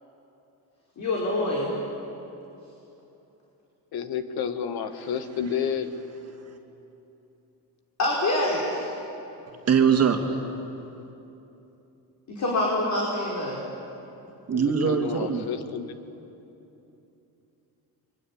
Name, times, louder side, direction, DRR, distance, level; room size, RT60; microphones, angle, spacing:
voice 1, 1.0-1.7 8.0-8.9 12.3-13.6, left 1 dB, 50° left, -3 dB, 5.1 m, -26 dB
voice 2, 3.9-5.9 14.5-15.9, left 8 dB, 70° left, 9 dB, 1.8 m, -30 dB
voice 3, 9.7-10.7 14.5-15.5, right 6 dB, 40° right, 4 dB, 2.3 m, -22 dB
29.0 x 23.5 x 8.7 m, 2.9 s
cardioid pair, 135°, 38 cm